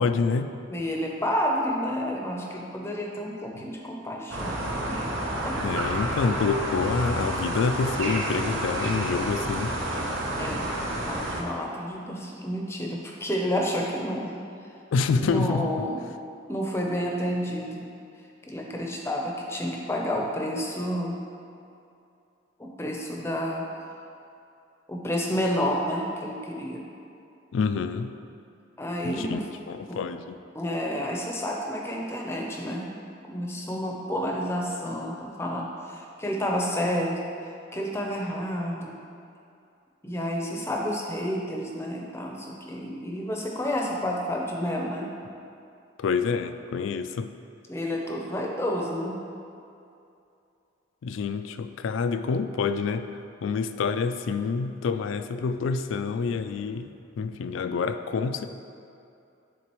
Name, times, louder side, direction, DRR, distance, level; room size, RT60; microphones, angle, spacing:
voice 1, 0.0-0.5 5.6-9.8 14.9-15.8 27.5-28.1 29.0-29.4 29.7-30.2 46.0-47.3 51.0-53.1 53.4-58.5, left 5 dB, 80° left, 10 dB, 0.3 m, -27 dB
voice 2, 0.7-5.8 10.3-10.7 11.1-14.4 15.2-16.0 16.5-17.9 18.4-21.2 22.6-23.7 24.9-26.8 28.8-29.5 29.9-30.0 30.5-33.0 33.3-37.2 37.7-39.0 40.0-45.1 47.7-49.2, equal, 15° left, -1 dB, 0.6 m, -30 dB
sound 1, 4.3-11.4, right 1 dB, 85° right, 0.9 m, -29 dB
10.5 x 3.8 x 3.0 m, 2.6 s
head